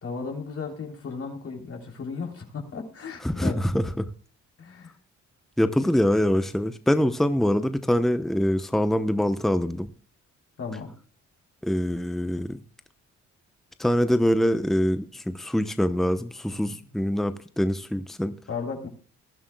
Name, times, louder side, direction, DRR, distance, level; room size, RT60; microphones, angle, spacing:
voice 1, 0.0-3.6 4.6-5.0 10.6-10.9 18.5-18.9, left 5 dB, 50° left, 3.6 m, -35 dB
voice 2, 3.2-4.1 5.6-9.9 11.6-12.6 13.8-18.4, equal, ahead, 0.8 m, -24 dB
21.0 x 11.0 x 2.3 m
cardioid pair, 90°, 30 cm